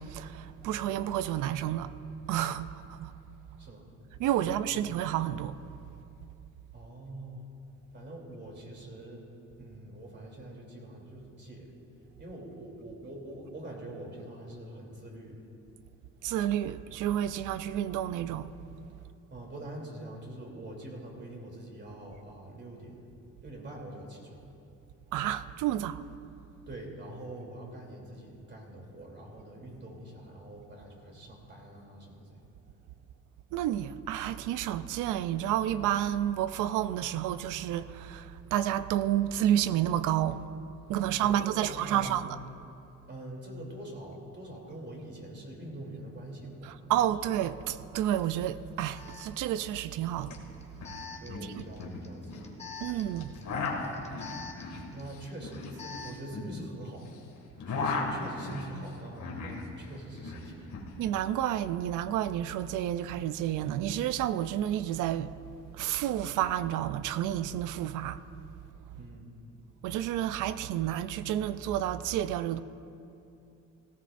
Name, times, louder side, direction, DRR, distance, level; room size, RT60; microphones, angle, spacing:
voice 1, 0.0-1.9 2.3-3.1 4.2-5.6 16.2-18.5 25.1-26.1 33.5-40.4 40.9-42.4 46.6-50.4 51.5-51.6 52.8-53.3 61.0-65.3 65.7-68.2 69.8-72.6, right 11 dB, 90° right, 0.5 m, -30 dB
voice 2, 3.6-3.9 4.4-4.8 6.7-7.5 7.9-9.2 9.6-11.7 12.2-15.4 19.3-23.0 23.4-24.4 26.7-32.4 41.0-42.2 43.1-46.9 51.2-53.6 54.9-57.1 57.7-60.7 68.9-69.3, right 1 dB, 35° right, 3.0 m, -44 dB
Alarm, 48.1-48.2 48.9-56.3, left 5 dB, 20° left, 1.2 m, -47 dB
sound 1, 50.3-50.4 50.6-51.0 51.3-52.5 53.2-57.1 57.4-59.7 59.9-60.9, left 3 dB, 75° left, 2.1 m, -36 dB
18.0 x 15.5 x 2.6 m
cardioid pair, 90°, 30 cm